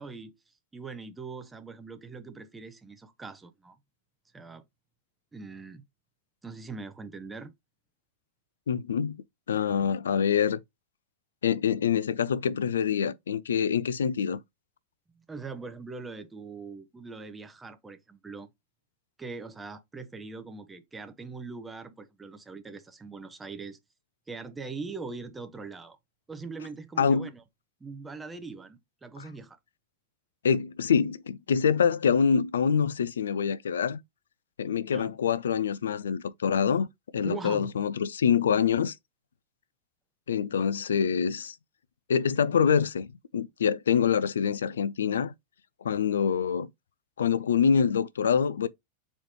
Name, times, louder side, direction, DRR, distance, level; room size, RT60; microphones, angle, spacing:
voice 1, 0.0-3.8 4.3-4.6 5.3-5.8 6.4-7.5 15.2-18.5 19.2-23.8 24.3-26.0 26.3-27.4 27.8-29.6 34.9-35.1 37.2-37.7, right 4 dB, 10° right, 0.6 m, -41 dB
voice 2, 8.7-9.2 9.5-10.6 11.4-14.4 27.0-27.3 30.4-34.0 34.6-36.9 37.1-39.0 40.3-41.5 42.1-43.1 43.3-45.3 45.8-46.7 47.2-48.7, left 7 dB, 65° left, 0.3 m, -25 dB
4.2 x 3.0 x 3.1 m
figure-of-eight pair, 90°, 0 cm